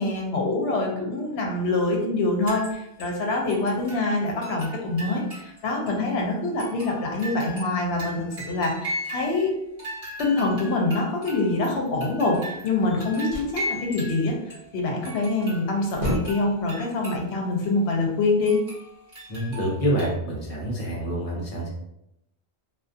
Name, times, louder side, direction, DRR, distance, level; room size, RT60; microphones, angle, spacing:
voice 1, 0.0-9.5 10.2-14.3 14.7-18.6, left 2 dB, 75° left, 0 dB, 0.9 m, -25 dB
sound 1, 2.5-3.2 3.5-5.6 5.9-6.0 6.6-9.5 9.8-14.7 15.0-17.3 17.6-17.7 18.5-20.1, equal, 35° right, 1.3 m, -38 dB
sound 2, 12.8-13.6 15.2-15.4 15.7-16.6, equal, 55° right, 1.0 m, -31 dB
voice 2, 19.3-21.7, right 1 dB, 40° left, -3 dB, 0.7 m, -27 dB
2.4 x 2.3 x 2.5 m, 0.82 s
omnidirectional pair, 1.1 m